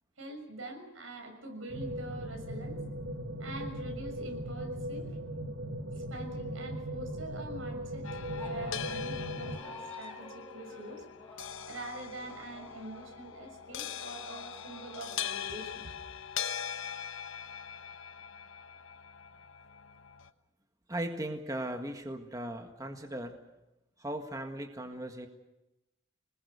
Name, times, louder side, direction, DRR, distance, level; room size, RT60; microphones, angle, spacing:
voice 1, 0.2-2.8 3.4-5.1 5.9-8.1 8.3-11.0 11.6-16.0, right 1 dB, 85° right, 4 dB, 6.5 m, -44 dB
sound 1, 1.7-9.6, equal, 60° right, 2.0 m, -38 dB
sound 2, 8.0-20.3, left 8 dB, 80° left, 1.1 m, -42 dB
sound 3, 8.3-15.3, left 2 dB, 10° left, 4.9 m, -51 dB
voice 2, 20.9-23.4 24.0-25.3, right 1 dB, 15° right, 5 dB, 1.7 m, -37 dB
27.0 x 20.0 x 6.9 m, 0.95 s
head